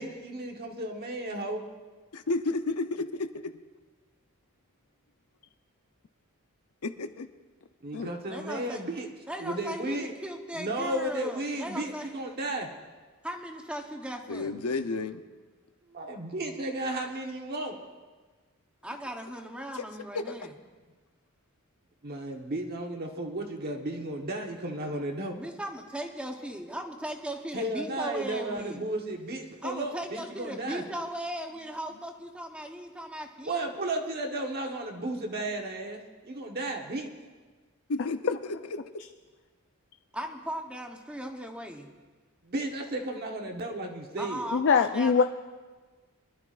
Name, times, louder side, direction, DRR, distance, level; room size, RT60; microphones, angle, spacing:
voice 1, 0.0-1.6 7.8-9.1 9.4-10.1 10.5-12.7 15.9-17.8 22.0-25.4 27.5-30.8 33.4-36.0 36.3-37.1 42.4-44.5, right 1 dB, 45° right, 1 dB, 1.2 m, -34 dB
voice 2, 2.1-3.5 6.8-7.3 14.3-15.2 19.7-19.8 20.1-20.3 37.9-38.4, left 3 dB, 85° left, 9 dB, 0.7 m, -31 dB
voice 3, 8.3-8.8 9.3-12.1 13.2-14.6 18.8-20.5 25.3-28.9 29.6-33.6 40.1-41.9 44.2-45.2, equal, 5° right, 3 dB, 0.9 m, -38 dB
voice 4, 44.5-45.2, left 5 dB, 55° left, 7 dB, 0.4 m, -22 dB
24.5 x 12.0 x 2.5 m, 1.4 s
head